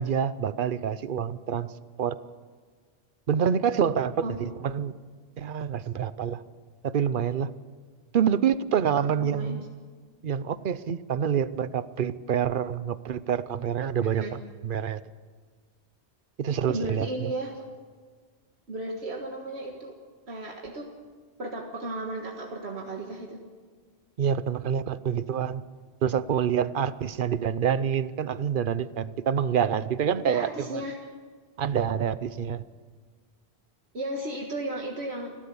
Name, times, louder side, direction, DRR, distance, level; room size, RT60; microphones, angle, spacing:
voice 1, 0.0-1.7 2.0-2.2 3.3-4.9 5.4-6.4 6.8-7.5 8.1-9.6 10.2-15.0 16.4-17.3 24.2-25.6 26.0-30.8 31.6-32.6, right 8 dB, 55° right, 15 dB, 0.8 m, -27 dB
voice 2, 4.2-4.5 9.2-9.6 14.0-14.3 16.7-17.6 18.7-20.0 20.3-20.9 21.4-23.4 30.3-31.1 33.9-35.4, right 1 dB, 75° right, 1 dB, 1.9 m, -34 dB
29.5 x 12.5 x 7.0 m, 1.5 s
omnidirectional pair, 1.1 m